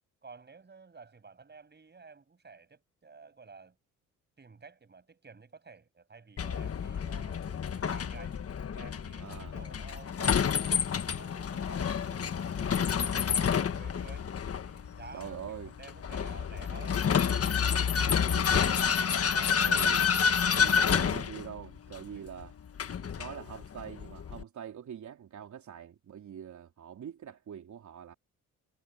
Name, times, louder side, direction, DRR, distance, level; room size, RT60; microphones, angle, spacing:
voice 1, 0.2-3.8 4.4-8.5 8.7-10.8 11.1-14.3 14.6-17.0 17.7-19.7 22.1-22.3, right 4 dB, 30° right, 6.7 m, -52 dB
Vehicle, 6.4-24.4, left 7 dB, 45° left, 1.5 m, -29 dB
voice 2, 9.2-9.5 15.1-15.7 18.0-18.8 19.6-20.1 20.5-22.5 23.2-28.1, right 9 dB, 60° right, 3.6 m, -44 dB
cardioid pair, 80°, 33 cm